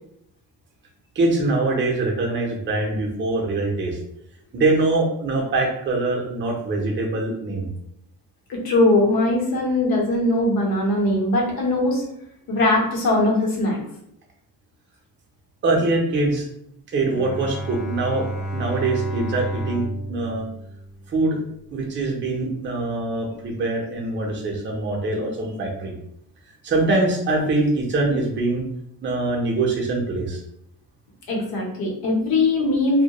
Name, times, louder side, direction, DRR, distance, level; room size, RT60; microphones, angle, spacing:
voice 1, 1.2-4.0 4.5-7.7 15.6-16.5 16.9-18.3 18.5-20.5 21.1-21.4 21.7-25.9 26.6-28.6 29.0-30.4, right 2 dB, 30° right, 0 dB, 0.5 m, -23 dB
voice 2, 8.5-12.0 12.5-13.8 31.3-33.0, left 2 dB, 70° left, -1 dB, 0.9 m, -20 dB
Bowed string instrument, 17.1-21.5, right 1 dB, 40° left, 0.6 m, -31 dB
2.2 x 2.1 x 2.8 m, 0.75 s
cardioid pair, 130°, 37 cm